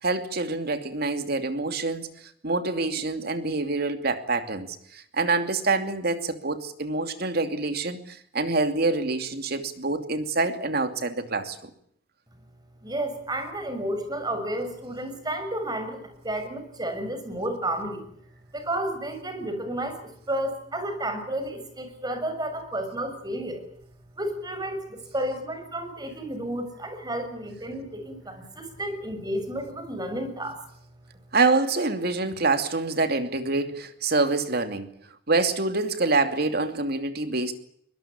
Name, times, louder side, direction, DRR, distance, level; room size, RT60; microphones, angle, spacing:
voice 1, 0.0-2.1 2.4-11.7 31.3-34.9 35.3-37.5, right 3 dB, 55° right, 2.7 m, -26 dB
voice 2, 12.8-18.0 18.5-23.6 24.2-30.6, right 1 dB, 20° right, 6.3 m, -31 dB
23.5 x 20.5 x 8.5 m
head